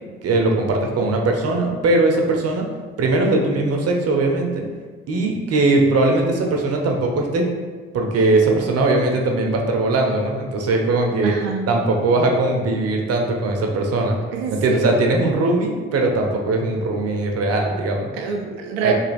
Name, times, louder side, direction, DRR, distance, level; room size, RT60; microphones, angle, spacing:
voice 1, 0.2-2.7 3.0-4.7 5.1-7.5 7.9-11.3 11.7-14.2 14.5-18.1 18.8-18.9, right 2 dB, 55° right, 2 dB, 0.8 m, -20 dB
voice 2, 11.2-11.7 14.3-14.8 18.1-18.9, right 6 dB, 90° right, 3 dB, 0.5 m, -26 dB
3.2 x 2.7 x 4.1 m, 1.5 s
hypercardioid pair, 50°, 30 cm